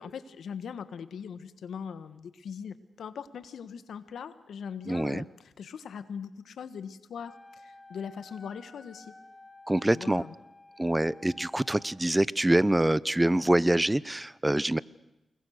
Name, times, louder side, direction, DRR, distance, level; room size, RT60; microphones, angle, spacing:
voice 1, 0.0-9.2 9.8-10.3, left 7 dB, 85° left, 12 dB, 1.4 m, -41 dB
voice 2, 4.9-5.2 9.7-10.2 10.8-14.8, right 1 dB, 15° right, 20 dB, 0.8 m, -25 dB
Wind instrument woodwind instrument, 7.2-12.0, left 2 dB, 25° left, 1.7 m, -52 dB
28.5 x 22.0 x 6.6 m, 0.94 s
cardioid pair, 60°, 0 cm